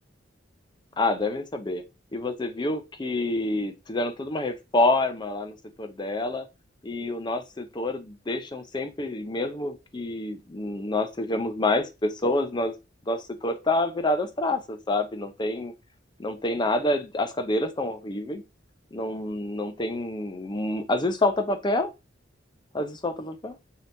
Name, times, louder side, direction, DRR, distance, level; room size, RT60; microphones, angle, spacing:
voice 1, 1.0-1.8 2.1-6.5 6.8-12.7 13.1-15.7 16.2-18.4 18.9-21.9 22.7-23.6, left 2 dB, 25° left, 7 dB, 0.5 m, -27 dB
5.3 x 2.8 x 2.6 m, 0.25 s
head